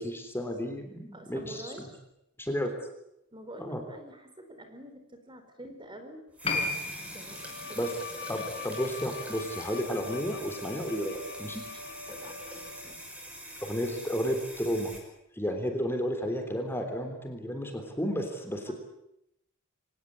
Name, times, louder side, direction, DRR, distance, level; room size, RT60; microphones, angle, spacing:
voice 1, 0.0-1.9 2.4-2.7 3.6-3.8 7.8-7.9 8.3-11.6 13.6-14.9 15.3-18.7, equal, 10° left, 5 dB, 3.5 m, -32 dB
voice 2, 1.1-2.0 3.3-6.2 6.5-6.7 7.1-7.4 7.7-7.8 11.7-11.8 12.1-13.1 18.7-18.8, right 1 dB, 20° right, 7 dB, 4.2 m, -47 dB
sound 1, 6.3-15.0, equal, 5° right, 6.0 m, -44 dB
Piano, 6.4-13.4 13.7-13.8, left 3 dB, 30° left, 4.0 m, -39 dB
Bowed string instrument, 7.3-13.1, left 4 dB, 55° left, 3.6 m, -43 dB
25.5 x 18.5 x 9.8 m, 0.81 s
head